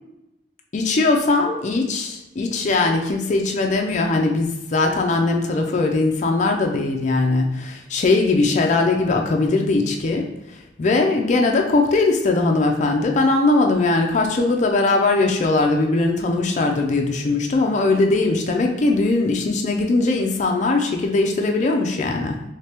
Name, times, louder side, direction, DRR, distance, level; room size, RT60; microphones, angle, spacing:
voice 1, 0.7-22.4, left 3 dB, 40° left, 2 dB, 0.4 m, -20 dB
3.3 x 3.2 x 2.9 m, 0.93 s
head